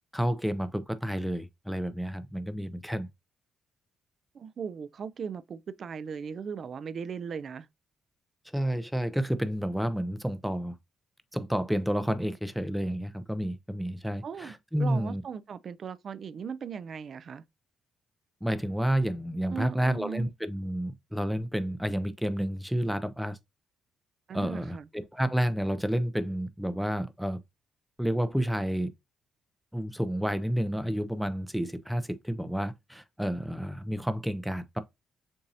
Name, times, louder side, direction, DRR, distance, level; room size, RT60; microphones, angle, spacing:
voice 1, 0.1-3.1 8.5-10.8 11.3-15.2 18.4-23.4 24.3-27.4 28.0-28.9 29.7-34.8, equal, ahead, 0.5 m, -30 dB
voice 2, 4.3-7.7 14.2-17.4 19.5-20.3 24.3-24.9, right 6 dB, 50° right, 0.4 m, -38 dB
6.9 x 2.7 x 2.6 m
cardioid pair, 90°, 0 cm